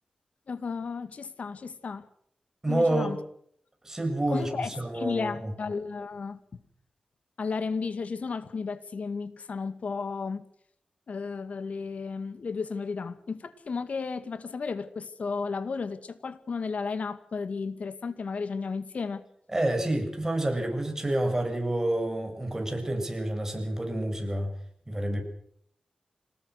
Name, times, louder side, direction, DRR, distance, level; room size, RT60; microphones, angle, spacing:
voice 1, 0.5-2.0 2.7-3.2 4.3-6.4 7.4-10.4 11.1-19.2, left 4 dB, 70° left, 2.0 m, -33 dB
voice 2, 2.6-3.2 3.8-5.5 19.5-24.5 24.9-25.2, right 1 dB, 20° right, 7.9 m, -28 dB
26.0 x 19.5 x 6.5 m
cardioid pair, 55°, 3 cm